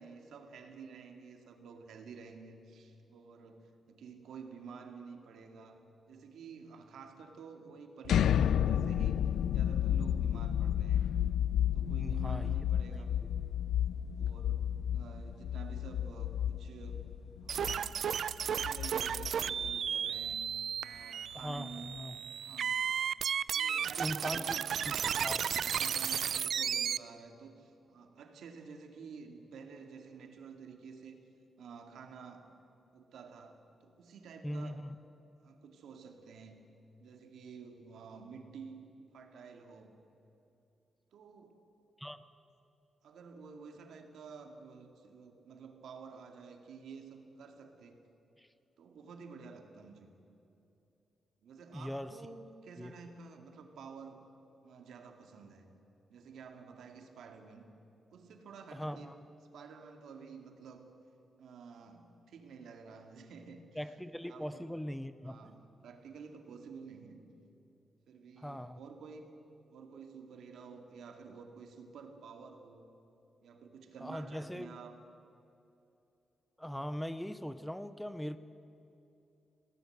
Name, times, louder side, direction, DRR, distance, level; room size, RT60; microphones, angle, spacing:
voice 1, 0.0-5.8 6.1-9.2 9.5-11.0 11.7-13.1 14.2-17.0 17.4-18.0 18.4-20.4 20.8-22.0 22.4-22.8 23.5-25.1 25.5-31.3 31.6-32.5 32.9-34.8 35.4-36.6 37.0-38.9 39.1-39.9 41.1-41.6 43.0-48.0 48.8-50.1 51.4-54.2 54.6-55.7 56.1-57.7 58.1-59.1 59.5-60.8 61.4-64.0 64.3-64.7 65.2-67.2 68.1-69.3 69.7-72.8 73.4-75.0, right 5 dB, 80° right, 4 dB, 2.3 m, -51 dB
sound 1, 8.0-19.9, left 10 dB, 80° left, 0.4 m, -31 dB
voice 2, 11.9-12.6 21.3-22.2 24.0-24.6 24.9-25.0 25.2-25.4 34.4-35.0 42.0-42.2 48.4-48.5 51.7-52.2 52.8-52.9 58.7-59.1 63.8-65.4 68.4-68.8 74.0-74.8 76.6-78.4, equal, 5° left, 12 dB, 0.5 m, -40 dB
sound 2, 17.5-27.0, right 8 dB, 55° right, 0.4 m, -34 dB
19.5 x 17.5 x 7.9 m, 2.8 s
wide cardioid pair, 180°, 0 cm